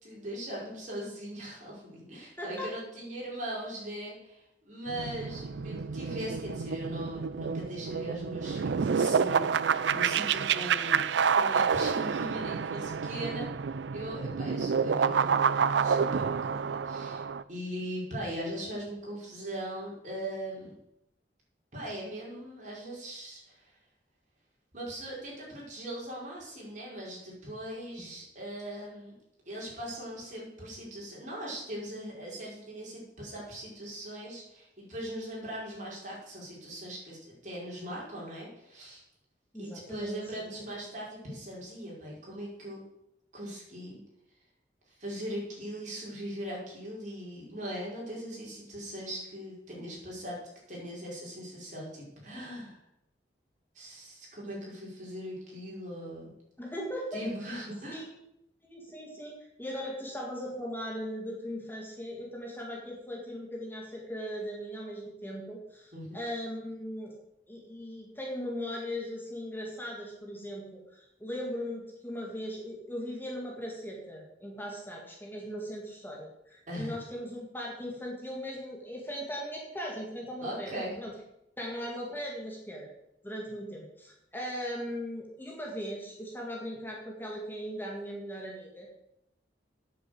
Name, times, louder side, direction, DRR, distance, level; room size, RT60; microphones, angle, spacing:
voice 1, 0.0-13.5 13.9-17.2 17.5-20.7 21.7-23.7 24.7-29.2 29.4-39.0 39.6-42.8 43.3-44.0 44.9-50.4 50.7-52.8 53.7-56.3 57.1-58.0 65.9-66.2 76.7-77.0 80.4-80.9, equal, 45° right, -4 dB, 4.9 m, -40 dB
voice 2, 2.4-2.7 28.0-28.1 39.5-40.5 56.6-57.2 57.9-58.2 58.7-67.1 67.5-81.1 81.6-82.9 83.2-88.9, equal, 10° left, -2 dB, 2.0 m, -39 dB
sound 1, 4.9-17.4, right 6 dB, 85° right, 0.4 m, -29 dB
9.1 x 7.4 x 7.8 m, 0.82 s
head